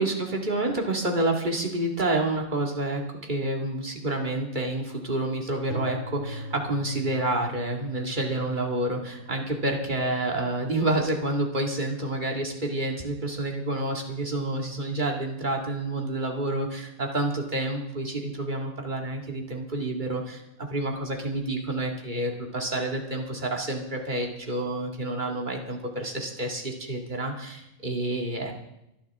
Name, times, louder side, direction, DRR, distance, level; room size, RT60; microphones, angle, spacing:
voice 1, 0.0-20.4 20.7-28.5, right 2 dB, 35° right, 1 dB, 2.4 m, -29 dB
sound 1, 5.7-13.6, equal, 65° right, 2.8 m, -42 dB
24.5 x 11.5 x 3.7 m, 0.86 s
omnidirectional pair, 1.3 m